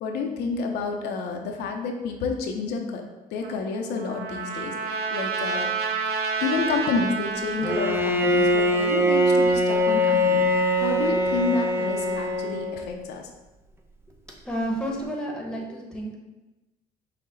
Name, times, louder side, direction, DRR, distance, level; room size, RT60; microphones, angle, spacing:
voice 1, 0.0-3.0 3.3-5.7 6.4-13.3, left 4 dB, 75° left, 2 dB, 0.6 m, -29 dB
Trumpet, 3.4-8.1, right 5 dB, 70° right, 0.6 m, -29 dB
Bowed string instrument, 7.6-13.1, left 1 dB, 15° right, 0.4 m, -22 dB
voice 2, 14.4-16.2, right 1 dB, 5° left, -1 dB, 0.9 m, -30 dB
5.7 x 2.1 x 3.9 m, 1.1 s
cardioid pair, 110°, 17 cm